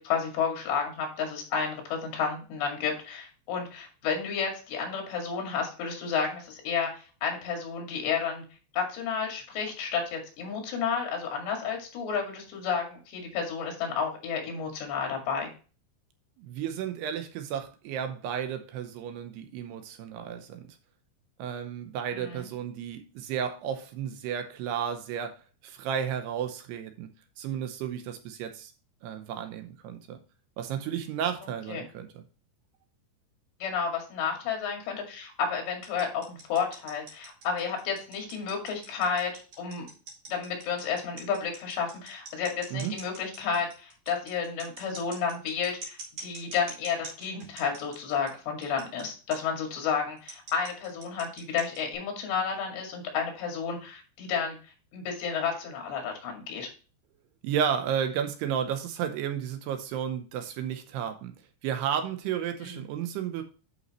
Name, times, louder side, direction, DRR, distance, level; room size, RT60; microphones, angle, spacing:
voice 1, 0.0-8.4 8.7-15.5 22.1-22.5 31.7-31.9 33.6-39.9 40.3-54.6 54.9-56.7 62.6-62.8, left 6 dB, 75° left, 2 dB, 4.4 m, -31 dB
voice 2, 16.4-20.8 21.4-27.1 27.4-28.7 29.0-30.2 30.6-32.2 42.7-42.9 57.4-61.3 61.6-63.4, right 8 dB, 75° right, 7 dB, 2.7 m, -33 dB
sound 1, 35.8-48.3 48.6-49.0 49.3-49.4 50.2-51.9, right 3 dB, 45° right, 3.7 m, -44 dB
11.0 x 5.6 x 3.0 m, 0.36 s
omnidirectional pair, 5.1 m